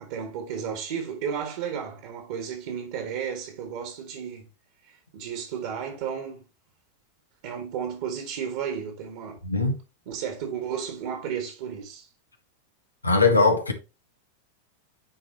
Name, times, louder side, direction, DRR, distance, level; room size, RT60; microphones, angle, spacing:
voice 1, 0.0-4.5 4.8-6.4 7.4-9.4 10.1-12.1, right 7 dB, 50° right, 1.8 m, -33 dB
voice 2, 9.4-9.8 13.0-13.7, left 3 dB, 80° left, 1.3 m, -20 dB
9.9 x 4.3 x 2.9 m
figure-of-eight pair, 90°, 0 cm